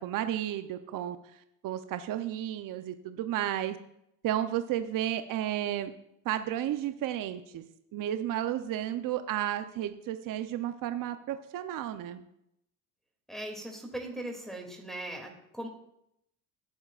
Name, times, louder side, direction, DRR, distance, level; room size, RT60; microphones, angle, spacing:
voice 1, 0.0-3.8 4.2-5.9 6.2-7.6 7.9-12.2, right 12 dB, 50° right, 9 dB, 0.9 m, -33 dB
voice 2, 13.3-15.7, right 1 dB, ahead, 0 dB, 2.7 m, -39 dB
18.0 x 9.2 x 2.5 m, 0.76 s
supercardioid pair, 85°, 43 cm